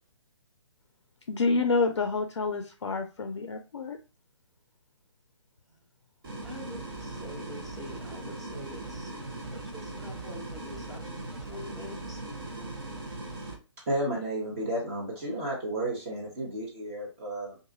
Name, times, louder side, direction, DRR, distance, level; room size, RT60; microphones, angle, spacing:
voice 1, 1.3-4.0, left 4 dB, 60° left, 5 dB, 0.4 m, -28 dB
sound 1, 6.2-13.5, right 2 dB, 50° right, 1.1 m, -39 dB
voice 2, 6.4-9.1 9.5-11.0 11.4-12.2, left 1 dB, ahead, -6 dB, 0.5 m, -45 dB
voice 3, 13.9-17.6, right 1 dB, 25° right, -3 dB, 1.0 m, -32 dB
2.6 x 2.6 x 2.6 m, 0.32 s
figure-of-eight pair, 135°, 16 cm